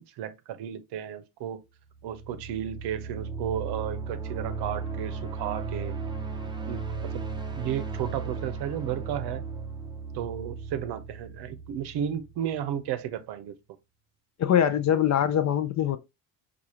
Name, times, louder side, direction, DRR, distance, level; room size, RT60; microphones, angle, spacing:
voice 1, 0.0-1.6 2.0-6.0 6.6-7.2 7.6-9.4 10.1-13.5, right 10 dB, 65° right, 0.7 m, -33 dB
sound 1, 1.9-12.7, right 4 dB, 10° right, 0.6 m, -36 dB
voice 2, 14.4-16.0, left 10 dB, 40° left, 0.5 m, -23 dB
4.7 x 2.4 x 2.8 m
supercardioid pair, 80°, 44 cm